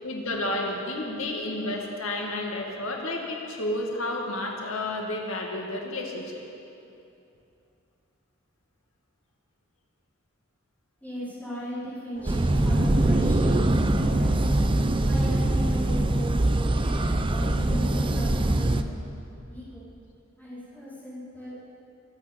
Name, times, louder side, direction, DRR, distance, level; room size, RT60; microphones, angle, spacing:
voice 1, 0.0-6.3, left 1 dB, 75° left, 0 dB, 2.2 m, -31 dB
voice 2, 11.0-14.4 15.0-19.0 19.5-19.9 20.4-21.6, right 1 dB, 10° left, -12 dB, 4.9 m, -37 dB
sound 1, 12.1-17.9, right 1 dB, 45° right, 3.7 m, -37 dB
sound 2, 12.3-18.8, right 1 dB, 25° right, 0.6 m, -23 dB
23.0 x 8.8 x 7.1 m, 2.7 s
head